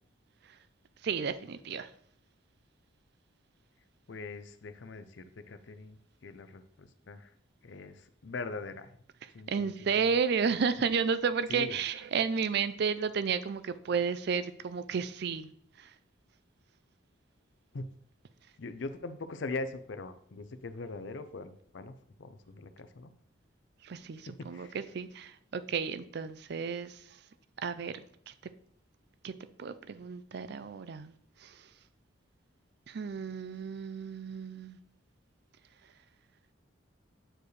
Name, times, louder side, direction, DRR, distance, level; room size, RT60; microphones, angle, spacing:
voice 1, 1.0-1.9 9.5-15.5 15.8-15.9 23.8-27.0 27.6-28.3 29.2-29.3 29.6-31.1 31.4-31.5 32.9-34.8, right 6 dB, 55° right, 13 dB, 0.4 m, -32 dB
voice 2, 4.1-7.3 7.6-8.9 9.3-10.2 11.5-11.8 17.7-17.9 18.6-23.1 24.3-24.8, left 3 dB, 60° left, 11 dB, 0.5 m, -42 dB
8.6 x 4.6 x 3.2 m, 0.63 s
head